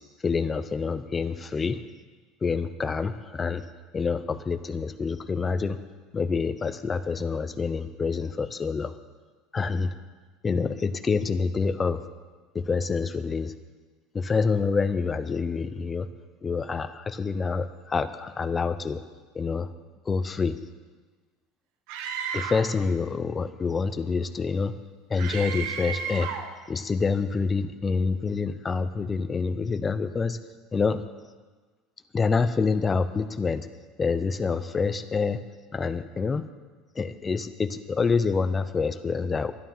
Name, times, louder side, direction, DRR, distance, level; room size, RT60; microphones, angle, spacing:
voice 1, 0.2-1.8 2.4-3.6 3.9-5.8 6.1-8.9 9.5-9.9 10.4-12.0 12.5-13.5 14.1-16.1 16.4-19.0 19.3-19.7 20.1-20.6 22.3-24.7 25.1-26.3 26.7-30.4 30.7-31.0 32.1-33.7 34.0-35.4 35.7-36.5 37.0-39.5, left 4 dB, 20° left, 12 dB, 0.7 m, -27 dB
Screaming, 21.9-22.8 25.2-26.5, right 7 dB, 70° right, 1.2 m, -33 dB
11.5 x 11.5 x 5.7 m, 1.4 s
supercardioid pair, 125°, 0 cm